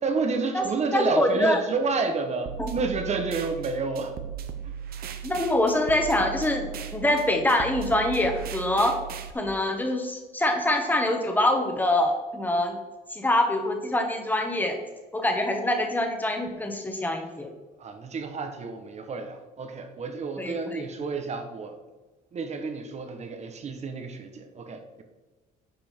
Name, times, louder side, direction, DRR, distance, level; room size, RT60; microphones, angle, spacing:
voice 1, 0.0-4.1 4.6-4.7 17.8-21.8 22.3-25.0, right 4 dB, 40° right, 6 dB, 1.3 m, -30 dB
voice 2, 0.9-1.6 2.6-2.7 5.2-6.7 6.9-8.9 9.3-12.8 13.1-14.8 15.1-17.5 20.4-20.8, left 1 dB, 10° left, 3 dB, 1.6 m, -25 dB
sound 1, 2.5-9.3, right 8 dB, 65° right, 0.9 m, -37 dB
10.0 x 5.3 x 4.6 m, 1.2 s
cardioid pair, 110°, 17 cm